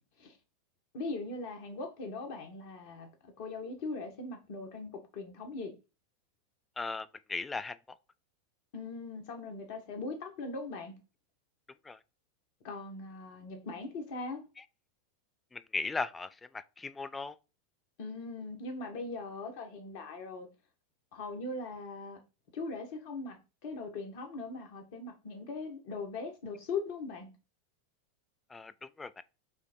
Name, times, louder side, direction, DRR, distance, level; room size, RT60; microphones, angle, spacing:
voice 1, 0.9-5.7 8.7-10.9 12.6-14.4 18.0-20.5 21.1-22.2 22.5-27.3, left 3 dB, 55° left, 1.3 m, -40 dB
voice 2, 6.8-7.8 11.9-12.0 15.5-16.3 16.5-17.3 28.5-29.2, left 4 dB, 15° left, 0.3 m, -37 dB
5.5 x 2.1 x 4.3 m
figure-of-eight pair, 90°, 0 cm